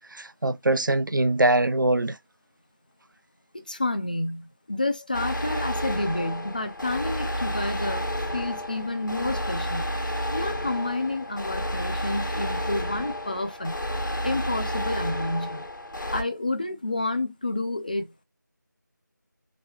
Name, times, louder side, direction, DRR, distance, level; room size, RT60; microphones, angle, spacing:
voice 1, 0.1-2.2, right 2 dB, 85° right, 0.5 m, -23 dB
voice 2, 3.5-9.8 10.3-13.8 14.2-15.7 16.1-18.2, left 2 dB, 25° left, 0.5 m, -29 dB
sound 1, 5.1-16.2, equal, 80° left, 1.2 m, -31 dB
3.9 x 2.1 x 2.8 m
figure-of-eight pair, 170°, 10 cm